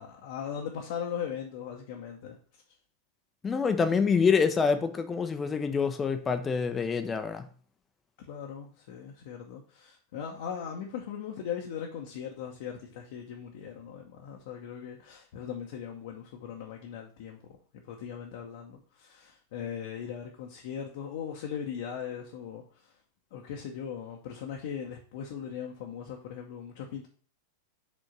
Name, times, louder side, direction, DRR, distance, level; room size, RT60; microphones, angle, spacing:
voice 1, 0.0-2.6 8.3-22.9 23.3-27.1, left 8 dB, 50° left, 0.9 m, -39 dB
voice 2, 3.4-7.4, left 5 dB, 20° left, 0.6 m, -26 dB
5.2 x 3.7 x 5.7 m
figure-of-eight pair, 90°, 0 cm